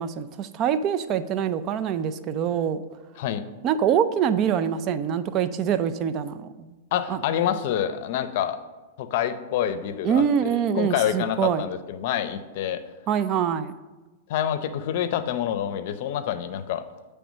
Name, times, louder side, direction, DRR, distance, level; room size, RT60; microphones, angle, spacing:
voice 1, 0.0-2.8 3.6-6.7 7.1-7.2 10.0-11.6 13.1-13.7, right 8 dB, 40° right, 12 dB, 0.4 m, -24 dB
voice 2, 6.9-8.6 9.0-10.2 10.7-12.8 14.3-16.9, left 10 dB, 60° left, 11 dB, 0.6 m, -27 dB
8.5 x 3.4 x 6.3 m, 1.2 s
hypercardioid pair, 125°, 0 cm